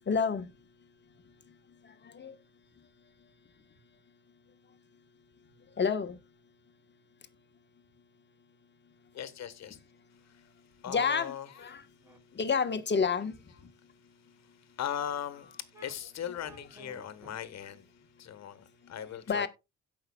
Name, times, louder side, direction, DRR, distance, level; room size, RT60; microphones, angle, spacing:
voice 1, 0.1-0.5 2.1-2.3 5.8-6.2 10.9-11.8 12.4-13.3 19.3-19.5, left 5 dB, 35° left, 1.2 m, -29 dB
voice 2, 9.1-9.8 10.3-10.4 10.8-11.7 14.8-15.5 15.8-17.9 18.2-19.5, left 9 dB, 60° left, 1.4 m, -39 dB
sound 1, 12.0-12.2 13.0-13.1 13.6-13.7 15.0-15.1 15.7-15.9 16.4-17.4, right 1 dB, 10° right, 3.1 m, -53 dB
17.0 x 5.7 x 2.3 m
cardioid pair, 90°, 30 cm